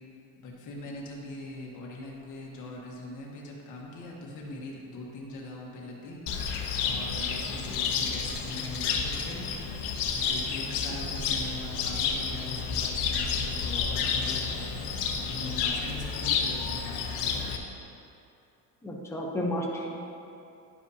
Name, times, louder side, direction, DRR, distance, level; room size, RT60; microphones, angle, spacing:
voice 1, 0.4-6.2 6.8-9.5 10.1-14.7 15.2-17.6, left 2 dB, 45° left, -3 dB, 1.4 m, -41 dB
Cricket, 6.3-17.6, left 6 dB, 75° left, 0.9 m, -30 dB
voice 2, 18.8-20.0, equal, 5° left, -2 dB, 0.7 m, -32 dB
11.0 x 4.9 x 2.8 m, 2.7 s
cardioid pair, 150°, 41 cm